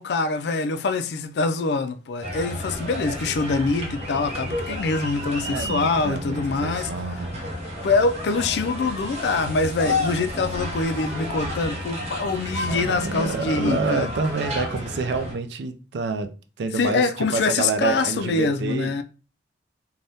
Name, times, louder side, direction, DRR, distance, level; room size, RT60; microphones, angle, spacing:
voice 1, 0.0-6.9 7.8-14.1 16.7-19.0, left 3 dB, 70° left, 0.4 m, -24 dB
sound 1, 2.2-15.3, left 1 dB, 35° right, 0.8 m, -31 dB
voice 2, 5.4-7.4 9.8-10.0 12.6-19.0, right 4 dB, 75° right, 0.4 m, -28 dB
3.4 x 2.2 x 2.6 m
head